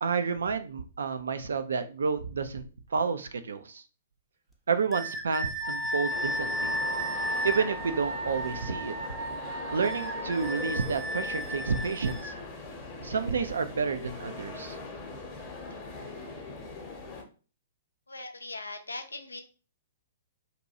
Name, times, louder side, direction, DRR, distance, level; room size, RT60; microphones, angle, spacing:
voice 1, 0.0-3.8 4.7-6.8 7.4-8.9 9.7-12.3 13.0-14.8, right 5 dB, 65° right, 10 dB, 0.3 m, -30 dB
sound 1, 4.9-7.7 9.8-12.4, equal, ahead, 0.5 m, -34 dB
Wind instrument woodwind instrument, 5.6-10.5, right 2 dB, 50° right, 0.7 m, -37 dB
sound 2, 6.1-17.2, left 3 dB, 25° left, 0.8 m, -41 dB
voice 2, 18.1-19.4, left 2 dB, 80° left, 6 dB, 0.5 m, -40 dB
2.7 x 2.2 x 2.7 m, 0.35 s
figure-of-eight pair, 110°, 0 cm